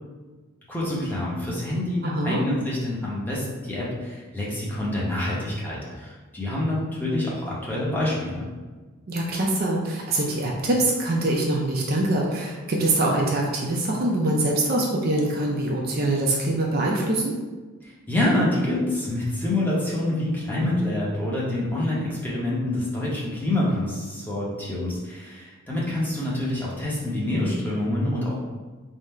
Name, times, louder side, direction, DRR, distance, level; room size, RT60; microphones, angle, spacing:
voice 1, 0.7-8.5 17.8-28.4, left 1 dB, 10° left, -6 dB, 0.8 m, -26 dB
voice 2, 2.0-2.4 9.1-17.3, right 2 dB, 45° right, -2 dB, 0.5 m, -24 dB
3.7 x 2.1 x 4.2 m, 1.3 s
head